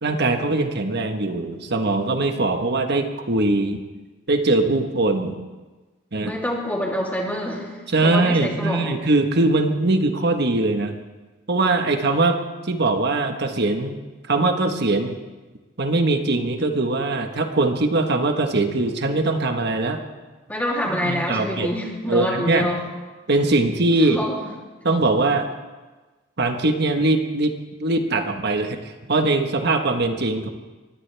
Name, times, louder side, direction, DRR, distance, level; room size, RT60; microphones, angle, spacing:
voice 1, 0.0-3.8 4.3-5.4 6.1-6.3 7.9-11.0 11.5-12.4 12.6-14.0 14.3-15.1 15.8-20.0 21.0-21.7 22.1-22.7 23.3-24.2 24.8-25.5 26.4-27.5 27.8-28.8 29.1-30.5, right 2 dB, 55° right, 6 dB, 1.4 m, -21 dB
voice 2, 6.2-7.7 8.0-9.0 20.5-22.8 24.0-24.4, left 1 dB, 10° left, -3 dB, 3.1 m, -26 dB
23.5 x 16.5 x 3.5 m, 1.3 s
head